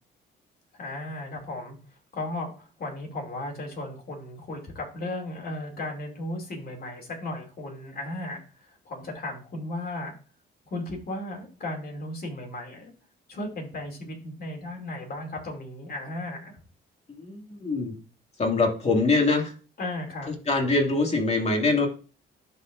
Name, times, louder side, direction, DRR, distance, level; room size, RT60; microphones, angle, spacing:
voice 1, 0.7-1.8 2.1-10.1 10.7-12.9 13.3-16.6 19.8-20.3, left 1 dB, 50° left, 1 dB, 2.7 m, -35 dB
voice 2, 17.2-17.9 18.4-19.5 20.5-21.9, left 3 dB, 35° left, 1 dB, 2.2 m, -23 dB
11.0 x 4.3 x 2.5 m, 0.36 s
cardioid pair, 90°, 20 cm